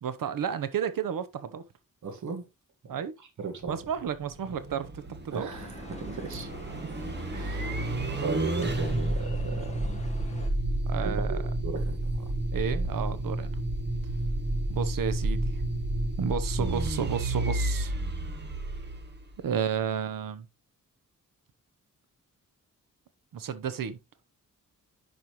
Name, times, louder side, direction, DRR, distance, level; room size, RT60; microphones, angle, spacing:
voice 1, 0.0-1.6 2.9-3.1 3.7-5.5 7.6-7.8 10.9-11.4 12.5-13.6 14.7-15.6 16.2-17.9 19.4-20.5 23.3-24.0, right 7 dB, 85° right, 0.9 m, -32 dB
voice 2, 2.0-2.5 2.8-2.9 3.4-3.7 5.3-6.5 7.3-7.8 8.2-10.0 11.0-12.3, right 4 dB, 60° right, 1.7 m, -36 dB
sound 1, 3.6-19.6, right 1 dB, 35° right, 1.2 m, -31 dB
sound 2, 5.5-10.5, left 2 dB, 20° left, 1.4 m, -45 dB
10.5 x 5.6 x 3.0 m
wide cardioid pair, 170°, 33 cm